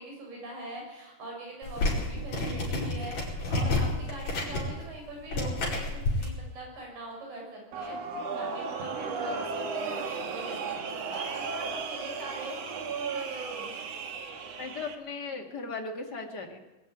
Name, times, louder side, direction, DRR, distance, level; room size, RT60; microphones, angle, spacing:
voice 1, 0.0-7.9 8.4-13.7, right 2 dB, 70° right, 0 dB, 8.4 m, -43 dB
sound 1, 1.6-6.3, left 2 dB, 55° left, 6.3 m, -30 dB
sound 2, 7.7-14.9, right 4 dB, 55° right, 2.4 m, -35 dB
voice 2, 14.6-16.6, left 4 dB, 35° left, 3 dB, 2.3 m, -37 dB
21.0 x 13.0 x 9.5 m, 1.1 s
omnidirectional pair, 4.0 m